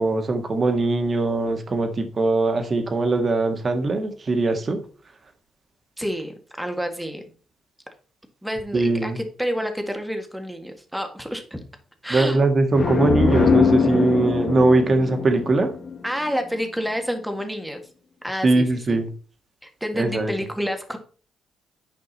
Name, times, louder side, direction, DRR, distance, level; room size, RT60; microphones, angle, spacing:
voice 1, 0.0-4.8 8.7-9.2 12.1-15.7 18.4-19.1 20.0-20.3, right 2 dB, 35° right, 6 dB, 1.6 m, -21 dB
voice 2, 6.0-7.2 8.4-11.6 12.0-12.4 16.0-17.9 18.2-19.0 19.6-21.0, equal, 5° right, 5 dB, 1.7 m, -29 dB
sound 1, 12.7-16.4, left 5 dB, 45° left, 1.5 m, -22 dB
9.5 x 5.3 x 4.1 m, 0.40 s
cardioid pair, 90°, 0 cm